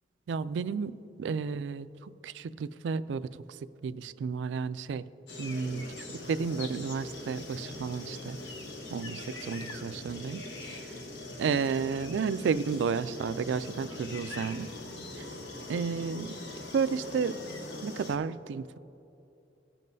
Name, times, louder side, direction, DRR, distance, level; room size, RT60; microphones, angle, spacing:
voice 1, 0.3-3.3 3.8-5.0 5.4-5.8 6.3-8.4 8.9-10.4 10.7-10.9 11.4-14.7 15.7-16.4 16.7-17.3 17.8-18.8, right 5 dB, 80° right, 14 dB, 0.3 m, -32 dB
sound 1, 5.3-18.2, left 2 dB, 90° left, 1.0 m, -42 dB
17.5 x 7.4 x 2.7 m, 2.8 s
head